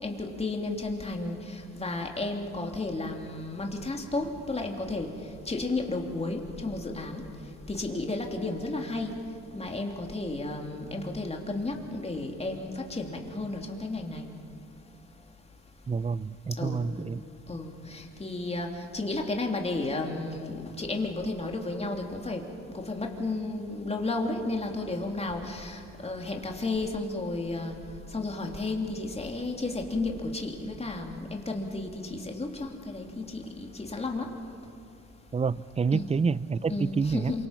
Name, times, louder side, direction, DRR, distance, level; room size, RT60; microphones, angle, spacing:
voice 1, 0.0-5.1 5.5-7.2 7.7-9.1 9.5-14.2 16.6-16.8 17.5-22.4 22.7-27.8 28.1-34.3 35.9-36.1 36.7-37.5, left 2 dB, 20° left, 2 dB, 3.1 m, -33 dB
voice 2, 15.9-17.2 35.3-37.3, right 5 dB, 20° right, 19 dB, 0.5 m, -28 dB
27.5 x 24.5 x 5.9 m, 2.6 s
cardioid pair, 90°, 30 cm